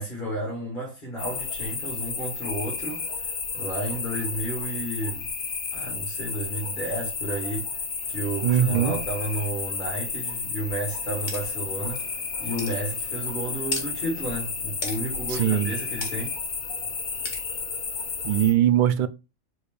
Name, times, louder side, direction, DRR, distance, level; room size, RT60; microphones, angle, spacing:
voice 1, 0.0-5.3 5.7-7.7 8.1-12.1 12.4-16.3, right 1 dB, 35° left, 2.5 m, -32 dB
sound 1, 1.2-18.5, left 5 dB, 90° left, 1.8 m, -32 dB
voice 2, 8.4-9.0 15.3-15.7 18.2-19.1, right 10 dB, 55° right, 0.5 m, -21 dB
sound 2, 11.3-11.4 12.0-12.1 12.6-12.8 13.7-13.9 14.8-15.0 16.0-16.1 17.2-17.4, left 3 dB, 55° left, 2.1 m, -32 dB
5.1 x 4.5 x 4.7 m
omnidirectional pair, 1.4 m